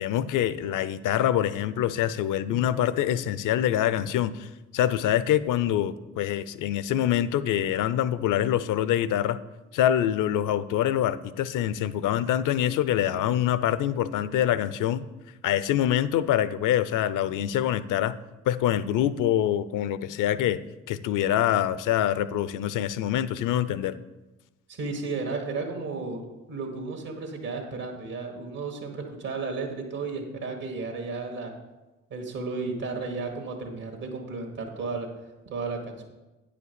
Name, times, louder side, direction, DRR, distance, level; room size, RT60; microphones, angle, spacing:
voice 1, 0.0-4.5 4.7-9.4 9.7-15.0 15.4-18.2 18.5-20.6 20.9-23.9, left 11 dB, 70° left, 15 dB, 0.6 m, -25 dB
voice 2, 24.7-26.2 26.5-31.6 32.1-35.1 35.5-36.0, right 4 dB, 70° right, 1 dB, 1.8 m, -33 dB
9.2 x 5.1 x 6.9 m, 1.1 s
hypercardioid pair, 50°, 33 cm